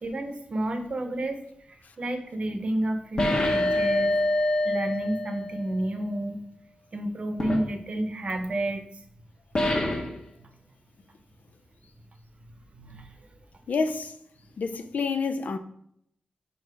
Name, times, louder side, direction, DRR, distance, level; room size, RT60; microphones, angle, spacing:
voice 1, 0.0-4.2 4.6-6.4 6.9-8.8 10.4-10.5 12.7-13.1, right 1 dB, 45° right, 0.8 m, -30 dB
sound 1, 3.2-5.7 7.4-7.6 9.6-10.2, left 1 dB, 35° left, 1.2 m, -25 dB
voice 2, 13.7-14.1 14.6-15.6, left 4 dB, 70° left, 0.6 m, -28 dB
5.6 x 4.7 x 4.8 m
wide cardioid pair, 160°, 3 cm